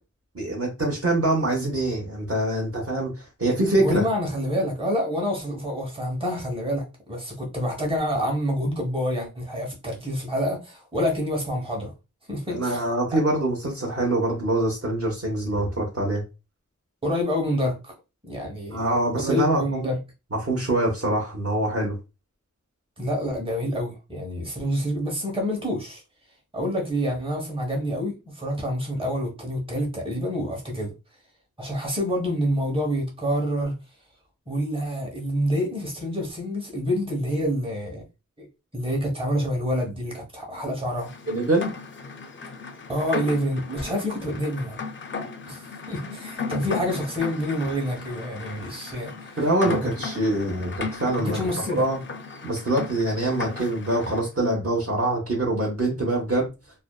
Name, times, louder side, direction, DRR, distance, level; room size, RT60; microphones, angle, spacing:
voice 1, 0.3-4.1 12.5-16.2 18.7-19.9 20.3-21.9 41.3-41.7 46.6-46.7 49.4-51.4 51.8-52.0 52.4-56.5, right 1 dB, 50° right, 0.8 m, -24 dB
voice 2, 3.8-11.9 12.3-12.8 13.1-13.2 17.0-17.9 18.2-18.8 19.1-20.0 23.0-26.0 26.5-30.9 31.6-33.8 34.5-38.0 38.4-38.5 38.7-41.1 42.9-44.8 45.5-49.1 49.6-49.9 51.2-51.8, equal, 15° right, 1.0 m, -27 dB
Rain, 41.0-54.3, left 5 dB, 40° left, 0.4 m, -36 dB
2.6 x 2.2 x 2.3 m
wide cardioid pair, 80°, 31 cm